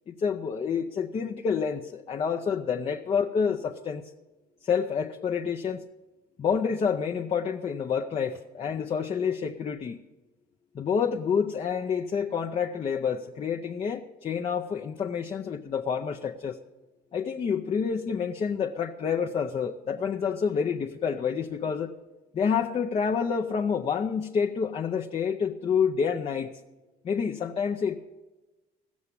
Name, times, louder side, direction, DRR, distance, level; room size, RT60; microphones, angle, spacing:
voice 1, 0.1-4.0 4.6-5.8 6.4-10.0 10.7-16.6 17.1-21.9 22.3-26.5 27.0-28.0, left 6 dB, 35° left, 2 dB, 0.6 m, -28 dB
15.0 x 7.2 x 8.3 m, 1.2 s
cardioid pair, 110°, 17 cm